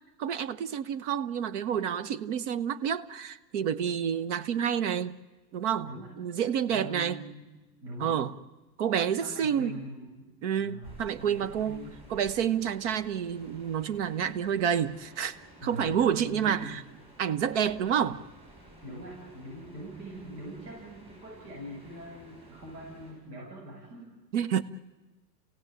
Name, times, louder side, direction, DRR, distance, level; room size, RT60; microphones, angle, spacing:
voice 1, 0.2-5.2 5.5-7.2 8.0-8.3 8.8-9.7 10.4-11.8 12.1-15.4 15.6-16.8 17.2-18.2 24.3-24.6, right 8 dB, 45° right, 15 dB, 1.1 m, -29 dB
voice 2, 5.8-6.1 6.7-7.4 7.8-8.2 9.2-12.0 15.6-16.8 18.8-24.1, equal, 70° right, -2 dB, 7.6 m, -43 dB
sound 1, 10.8-23.1, right 1 dB, 10° right, 7.3 m, -53 dB
30.0 x 17.0 x 9.1 m, 1.2 s
hypercardioid pair, 150°, 50 cm